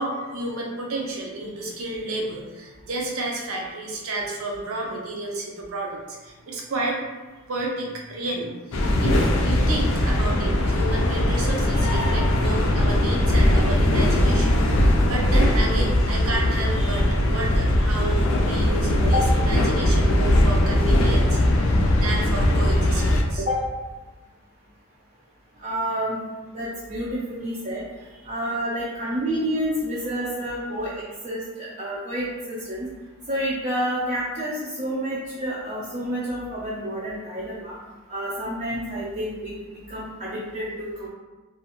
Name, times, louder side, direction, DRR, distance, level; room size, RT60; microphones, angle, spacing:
voice 1, 0.0-7.0 7.5-23.4, right 2 dB, 90° right, -1 dB, 0.6 m, -31 dB
sound 1, 8.7-23.2, left 1 dB, 70° left, 0.4 m, -20 dB
voice 2, 25.6-26.2 26.5-27.8 28.2-32.9 33.3-37.8 38.1-39.5 39.9-41.1, equal, 40° right, -7 dB, 0.4 m, -29 dB
2.4 x 2.4 x 2.9 m, 1.2 s
head